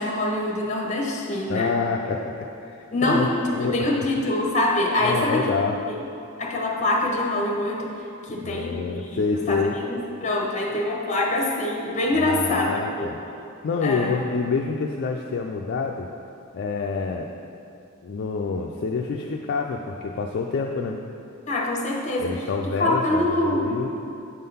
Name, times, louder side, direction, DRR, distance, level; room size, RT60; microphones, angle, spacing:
voice 1, 0.0-1.7 2.9-5.5 5.9-6.0 6.4-7.9 8.2-13.1 13.8-14.1 21.5-22.4 22.8-23.8, left 1 dB, 35° left, -1 dB, 1.0 m, -25 dB
voice 2, 1.5-2.3 2.6-3.8 4.2-4.3 5.0-5.8 8.3-9.8 12.1-13.2 13.6-16.1 16.5-17.3 18.0-21.0 22.2-23.9, left 4 dB, 55° left, 1 dB, 0.4 m, -27 dB
8.3 x 3.8 x 5.5 m, 2.7 s
head